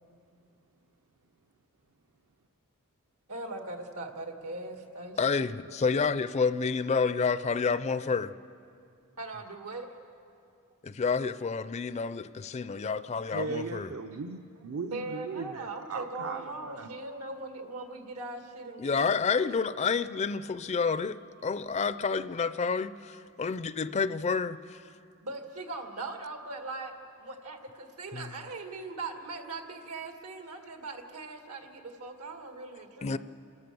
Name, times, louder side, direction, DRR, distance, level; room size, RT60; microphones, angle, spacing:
voice 1, 3.3-5.8 9.2-9.9 14.9-19.5 25.2-26.9 27.2-33.2, right 2 dB, 85° right, 2.0 m, -40 dB
voice 2, 5.2-8.3 10.8-13.9 18.8-24.8 28.1-28.3 33.0-33.2, left 5 dB, 30° left, 0.4 m, -29 dB
voice 3, 13.3-17.0, right 3 dB, 70° right, 0.7 m, -38 dB
28.5 x 14.0 x 6.9 m
head